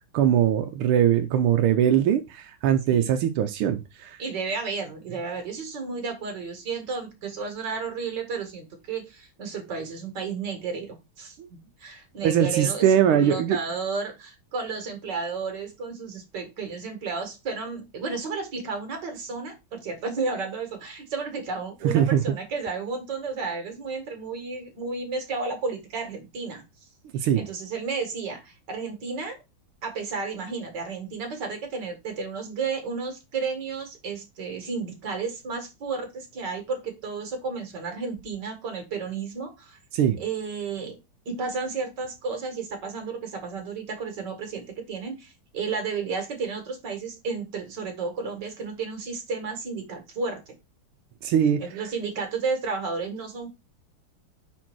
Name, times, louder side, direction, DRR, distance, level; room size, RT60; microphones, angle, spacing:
voice 1, 0.1-4.2 11.4-11.5 12.2-13.6 21.9-22.2 27.1-27.4 39.9-40.2 51.2-51.6, right 9 dB, 85° right, 1.6 m, -21 dB
voice 2, 4.2-26.9 27.2-29.4 29.8-39.8 40.2-41.0 41.3-50.4 51.6-53.5, right 4 dB, 55° right, 2.3 m, -32 dB
5.3 x 4.4 x 6.0 m
omnidirectional pair, 2.3 m